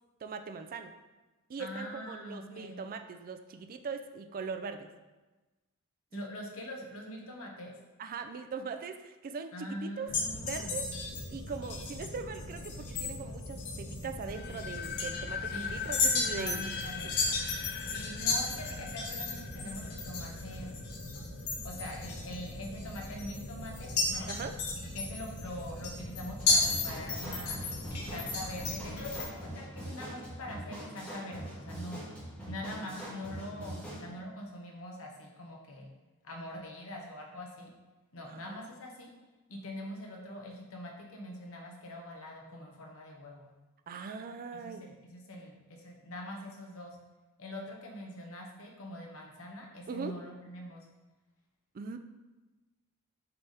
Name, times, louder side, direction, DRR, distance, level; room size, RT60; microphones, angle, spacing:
voice 1, 0.2-0.9 1.5-4.9 6.1-6.3 8.0-11.0 11.3-16.6 24.3-24.6 38.2-38.6 43.9-44.8 49.9-50.2 51.7-52.0, right 5 dB, 40° right, 7 dB, 0.4 m, -41 dB
voice 2, 1.6-2.8 6.1-7.7 9.5-10.7 15.5-15.7 16.4-17.1 17.9-20.8 21.6-24.3 24.9-27.6 28.1-32.0 32.5-35.9 36.2-37.7 38.1-39.1 39.5-43.5 44.6-47.0 47.4-50.9, left 1 dB, 65° left, 0 dB, 1.1 m, -43 dB
sound 1, 10.1-29.3, left 3 dB, 85° left, 1.2 m, -35 dB
sound 2, 14.3-21.2, left 7 dB, 50° left, 0.3 m, -41 dB
sound 3, 26.4-34.1, equal, 5° left, 1.4 m, -43 dB
6.8 x 3.4 x 4.2 m, 1.2 s
head